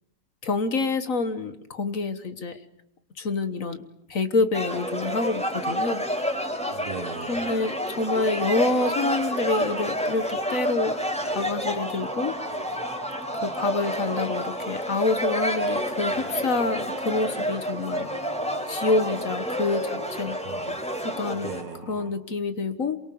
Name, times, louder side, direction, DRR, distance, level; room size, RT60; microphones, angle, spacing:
voice 1, 0.4-2.6 3.2-3.8 4.1-6.0 7.3-10.9 11.3-12.3 13.4-18.1 18.7-20.4 21.0-21.5 21.9-23.0, left 3 dB, 50° left, 10 dB, 1.6 m, -27 dB
sound 1, 4.5-21.6, equal, 5° left, 4.2 m, -29 dB
voice 2, 6.7-7.5 16.1-16.3 20.4-20.8 21.3-22.1, right 6 dB, 65° right, 12 dB, 1.7 m, -39 dB
sound 2, 7.3-22.1, right 2 dB, 40° right, 3.2 m, -43 dB
28.0 x 23.5 x 7.0 m, 0.79 s
omnidirectional pair, 1.9 m